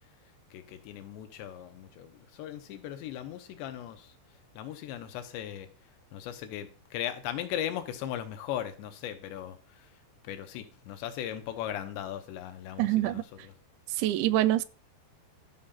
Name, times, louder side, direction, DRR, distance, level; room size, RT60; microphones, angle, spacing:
voice 1, 0.5-4.2 4.5-5.7 6.1-10.0 10.2-13.5 14.0-14.1, left 11 dB, 80° left, 3.1 m, -38 dB
voice 2, 12.8-13.2 14.0-14.6, right 14 dB, 85° right, 2.9 m, -25 dB
12.5 x 5.1 x 5.7 m
omnidirectional pair, 5.1 m